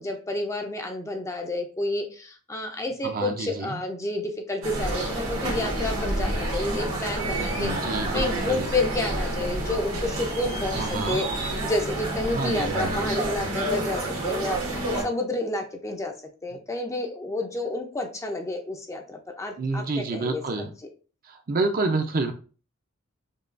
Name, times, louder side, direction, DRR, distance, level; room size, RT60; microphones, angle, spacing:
voice 1, 0.0-16.1 16.4-20.7, left 2 dB, 15° left, 3 dB, 0.4 m, -30 dB
voice 2, 3.0-3.8 7.4-8.7 10.8-11.2 12.3-13.1 19.6-20.7 21.5-22.3, right 3 dB, 45° right, 6 dB, 0.5 m, -28 dB
sound 1, 4.6-15.0, right 1 dB, 80° right, 1.3 m, -29 dB
5.4 x 2.3 x 2.5 m, 0.37 s
head